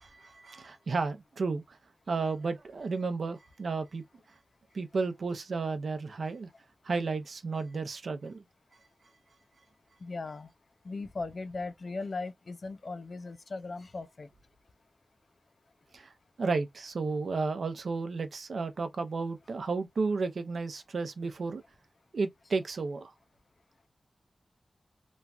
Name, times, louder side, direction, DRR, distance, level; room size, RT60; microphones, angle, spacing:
voice 1, 0.0-1.8 2.1-4.0 4.7-6.5 6.8-8.4 15.9-16.1 16.4-21.6 22.1-23.1, right 4 dB, 75° right, 0.6 m, -33 dB
voice 2, 10.0-10.5 10.8-14.3, left 3 dB, 55° left, 0.4 m, -38 dB
3.1 x 2.3 x 2.4 m
wide cardioid pair, 90°, 0 cm